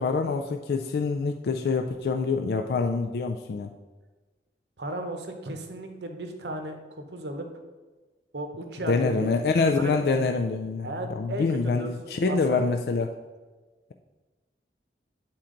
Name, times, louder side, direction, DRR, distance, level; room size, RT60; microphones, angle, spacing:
voice 1, 0.0-3.7 8.9-10.9 11.2-13.2, left 4 dB, 60° left, 5 dB, 0.3 m, -25 dB
voice 2, 4.8-7.5 8.3-9.3 9.8-10.0 10.8-12.6, right 1 dB, 70° right, 5 dB, 0.9 m, -35 dB
8.6 x 4.4 x 3.8 m, 1.3 s
head